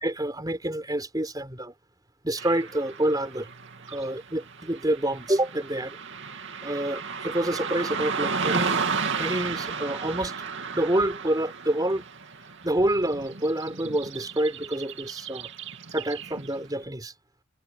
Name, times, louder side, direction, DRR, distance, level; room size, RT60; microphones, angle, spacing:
voice 1, 0.0-1.7 2.2-3.5 3.9-6.0 6.6-8.8 9.1-10.3 10.7-12.1 12.6-15.5 15.9-17.1, right 1 dB, 20° right, 4.1 m, -27 dB
Car passing by / Traffic noise roadway noise, 2.4-16.7, right 5 dB, 60° right, 2.7 m, -33 dB
head